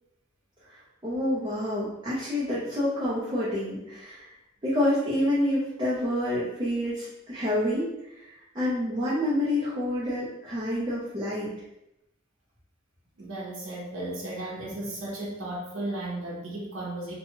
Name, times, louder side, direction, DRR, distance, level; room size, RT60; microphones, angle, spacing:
voice 1, 1.0-4.3 4.6-11.5, left 1 dB, 25° right, -10 dB, 0.6 m, -28 dB
voice 2, 13.2-17.1, right 1 dB, 75° right, -5 dB, 0.8 m, -35 dB
2.7 x 2.3 x 2.9 m, 0.87 s
head